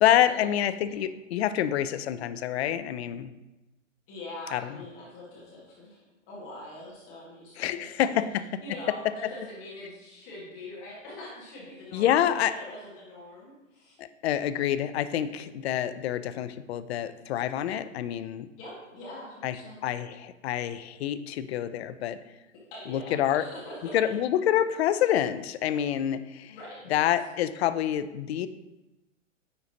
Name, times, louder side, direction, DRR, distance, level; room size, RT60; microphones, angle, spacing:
voice 1, 0.0-3.3 4.5-4.6 7.6-8.4 11.9-12.5 14.0-18.5 19.4-19.5 19.8-22.2 22.9-23.4 23.9-26.6 26.9-28.5, left 11 dB, 55° left, 13 dB, 0.5 m, -27 dB
voice 2, 4.1-6.0 6.3-8.2 8.6-14.0 18.6-19.8 22.7-24.1 26.5-27.0, left 1 dB, 35° left, -5 dB, 1.9 m, -43 dB
9.6 x 4.0 x 2.9 m, 1.0 s
hypercardioid pair, 130°, 38 cm